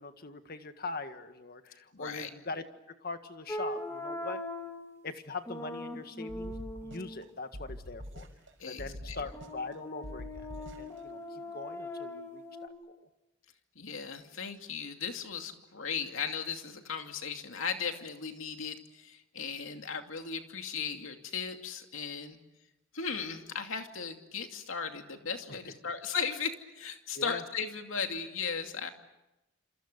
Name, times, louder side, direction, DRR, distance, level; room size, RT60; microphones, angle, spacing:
voice 1, 0.0-4.4 5.0-6.5 6.8-8.3 8.6-13.1 27.1-27.4, left 3 dB, 50° left, 8 dB, 1.7 m, -42 dB
voice 2, 1.9-2.3 8.6-9.2 13.8-22.4 22.9-28.9, left 6 dB, 85° left, 5 dB, 2.6 m, -37 dB
sound 1, 3.5-4.9 5.5-7.2 9.3-12.7, left 1 dB, 15° left, 3.3 m, -40 dB
sound 2, 6.3-7.2 7.5-8.5 8.8-9.7 10.0-11.0, equal, 70° right, 5.7 m, -44 dB
28.0 x 27.0 x 6.9 m, 0.95 s
head